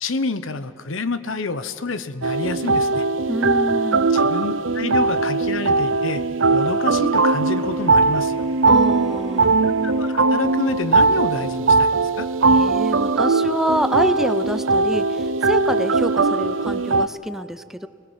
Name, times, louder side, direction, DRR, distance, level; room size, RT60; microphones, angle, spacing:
voice 1, 0.0-3.1 4.1-6.2 6.5-8.4 9.7-12.3, left 3 dB, 90° left, 12 dB, 1.1 m, -28 dB
sound 1, 2.2-17.1, right 3 dB, 80° right, 0.7 m, -19 dB
voice 2, 3.3-4.1 8.7-9.6 12.5-17.9, right 1 dB, ahead, 11 dB, 0.6 m, -27 dB
28.0 x 19.0 x 7.4 m, 2.4 s
head